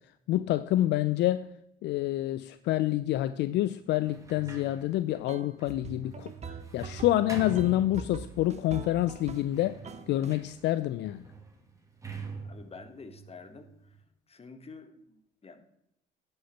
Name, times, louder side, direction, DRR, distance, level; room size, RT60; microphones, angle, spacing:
voice 1, 0.3-1.5 1.8-9.8 10.1-11.3, left 14 dB, 65° left, 0.4 m, -28 dB
Sliding door, 4.0-8.5 9.1-14.0, right 4 dB, 15° right, 2.0 m, -46 dB
sound 1, 5.3-9.6 9.8-10.4, right 5 dB, 35° right, 0.9 m, -42 dB
voice 2, 12.4-14.0 14.3-15.6, left 4 dB, 30° left, 1.3 m, -49 dB
9.9 x 5.5 x 5.6 m
hypercardioid pair, 65°, 19 cm